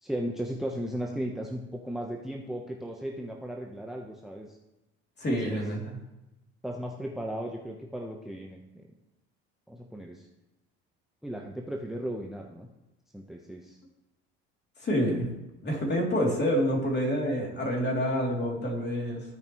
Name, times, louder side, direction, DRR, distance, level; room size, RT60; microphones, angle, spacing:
voice 1, 0.0-4.6 5.3-5.6 6.6-8.8 9.7-10.2 11.2-12.7 13.1-13.8, equal, ahead, 1 dB, 1.0 m, -36 dB
voice 2, 5.2-5.8 14.8-15.3 15.6-19.2, equal, 35° left, -1 dB, 3.1 m, -27 dB
15.5 x 5.2 x 3.1 m, 0.98 s
supercardioid pair, 75°, 31 cm